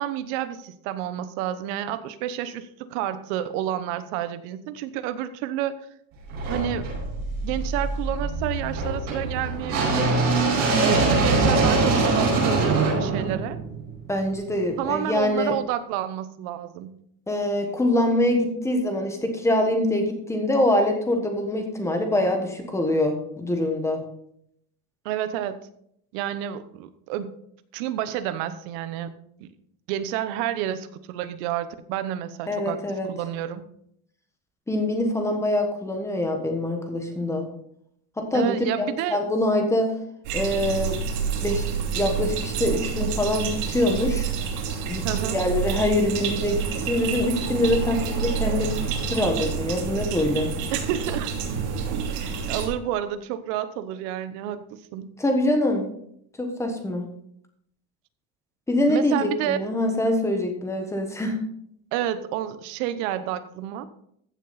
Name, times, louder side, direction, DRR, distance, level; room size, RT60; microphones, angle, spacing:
voice 1, 0.0-5.8 6.5-6.9 7.4-10.2 10.8-13.6 14.8-17.0 25.0-25.7 26.1-27.3 27.7-29.1 29.4-29.5 29.9-32.8 33.1-33.6 38.3-39.2 45.0-45.4 50.7-51.3 52.1-55.1 58.9-59.6 61.9-63.8, right 11 dB, 60° right, 12 dB, 1.0 m, -30 dB
sound 1, 6.3-14.3, right 3 dB, 40° right, 5.5 m, -23 dB
voice 2, 14.1-15.5 17.3-24.0 32.5-33.1 34.7-37.5 38.2-39.9 40.3-41.0 41.4-41.7 42.0-44.3 44.9-48.8 49.1-50.5 55.2-55.8 56.4-57.0 58.7-61.4, left 1 dB, 5° left, 4 dB, 1.2 m, -24 dB
sound 2, 40.2-52.7, right 6 dB, 90° right, 2.9 m, -28 dB
15.0 x 6.8 x 4.1 m, 0.71 s
cardioid pair, 175°, 42 cm